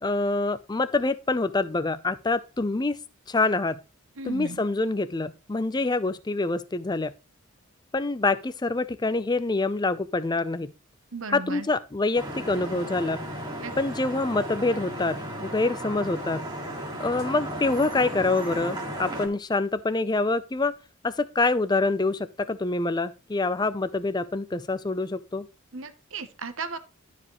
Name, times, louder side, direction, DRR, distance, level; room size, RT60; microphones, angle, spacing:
voice 1, 0.0-3.0 3.3-3.8 4.2-7.1 7.9-10.7 11.3-13.2 13.8-16.4 17.0-20.7 21.0-25.5, left 3 dB, 20° left, 0.5 m, -26 dB
voice 2, 4.2-4.6 11.1-11.7 13.6-13.7 25.7-26.8, right 3 dB, 65° right, 0.9 m, -35 dB
Vehicle horn car horn honking / Traffic noise roadway noise, 12.1-19.3, equal, 20° right, 2.2 m, -35 dB
12.0 x 5.0 x 3.1 m
head